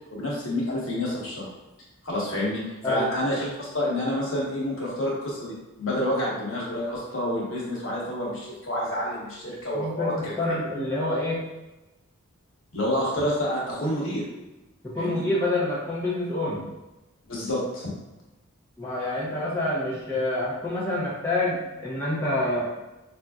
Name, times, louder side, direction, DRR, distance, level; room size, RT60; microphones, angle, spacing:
voice 1, 0.1-1.4 2.0-10.5 12.7-14.2 15.0-15.2 17.3-17.9, left 1 dB, 60° left, -5 dB, 1.1 m, -28 dB
voice 2, 9.7-11.4 14.8-16.6 18.8-22.7, left 1 dB, 10° left, -8 dB, 0.7 m, -27 dB
5.2 x 2.6 x 2.3 m, 1.0 s
head